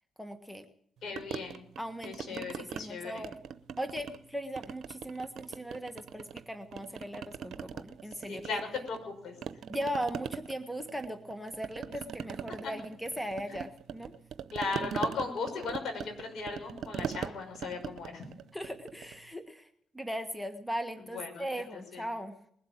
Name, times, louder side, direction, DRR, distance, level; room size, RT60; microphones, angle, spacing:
voice 1, 0.2-0.6 1.8-3.3 3.8-8.6 9.7-14.1 18.5-19.7 19.9-22.3, equal, ahead, 9 dB, 1.5 m, -38 dB
voice 2, 1.0-1.7 2.0-3.3 8.3-9.3 12.6-12.7 13.5-13.6 14.5-18.2 21.1-21.5 21.7-22.0, left 4 dB, 65° left, 3 dB, 5.8 m, -37 dB
sound 1, 1.2-2.8 3.2-4.2 4.6-6.4 6.7-9.1 9.4-19.2, right 7 dB, 70° right, 0.8 m, -41 dB
21.0 x 7.6 x 8.7 m, 0.72 s
supercardioid pair, 60°, 0 cm